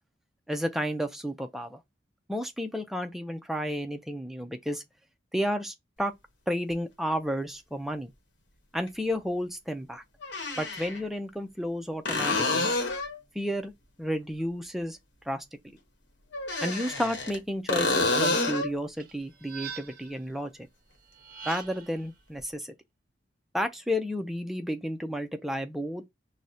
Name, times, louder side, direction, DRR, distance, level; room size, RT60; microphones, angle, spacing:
voice 1, 0.5-1.8 2.3-4.8 5.3-6.1 6.5-8.1 8.7-10.0 10.6-12.7 13.3-13.7 14.0-15.0 15.3-15.4 16.6-20.5 21.5-22.7 23.5-26.1, equal, ahead, 0.4 m, -32 dB
sound 1, 6.7-6.8 8.9-9.0 10.2-11.0 12.0-13.2 16.3-17.4 17.7-18.7 22.4-22.5, left 2 dB, 65° left, 1.0 m, -28 dB
sound 2, 19.0-20.2 21.1-22.0, right 6 dB, 50° right, 0.5 m, -42 dB
6.2 x 2.1 x 2.7 m
head